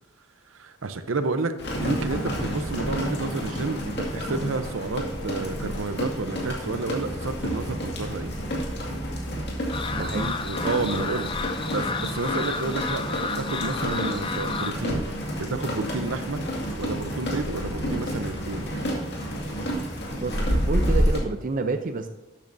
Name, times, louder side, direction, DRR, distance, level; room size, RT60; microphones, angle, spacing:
voice 1, 0.5-1.5 1.8-8.3 10.0-11.3 11.7-15.0 15.4-16.4 16.8-18.8, right 3 dB, 75° right, 10 dB, 0.7 m, -30 dB
sound 1, 1.6-21.2, equal, 55° left, 2.1 m, -29 dB
sound 2, 2.0-6.2, right 1 dB, 5° right, 1.4 m, -45 dB
sound 3, 9.7-14.7, left 4 dB, 25° left, 0.4 m, -31 dB
voice 2, 9.9-10.3 20.2-22.1, right 3 dB, 40° right, 7 dB, 0.5 m, -29 dB
12.0 x 8.8 x 2.7 m, 1.0 s
head